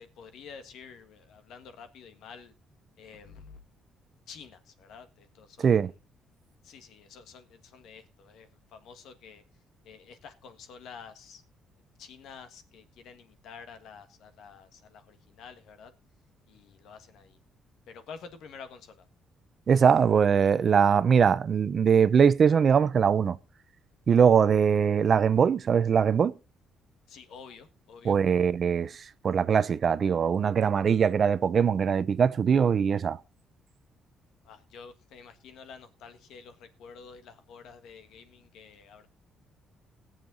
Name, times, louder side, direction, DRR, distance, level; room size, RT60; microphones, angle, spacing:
voice 1, 0.0-2.5 3.0-3.6 4.3-5.8 6.6-9.4 9.8-11.4 12.0-15.9 16.5-17.4 17.9-19.0 27.1-28.2 34.4-39.1, left 6 dB, 70° left, 1.5 m, -49 dB
voice 2, 5.6-5.9 19.7-23.4 24.1-26.3 28.0-33.2, right 7 dB, 40° right, 0.5 m, -22 dB
20.5 x 7.4 x 3.8 m
cardioid pair, 145°, 0 cm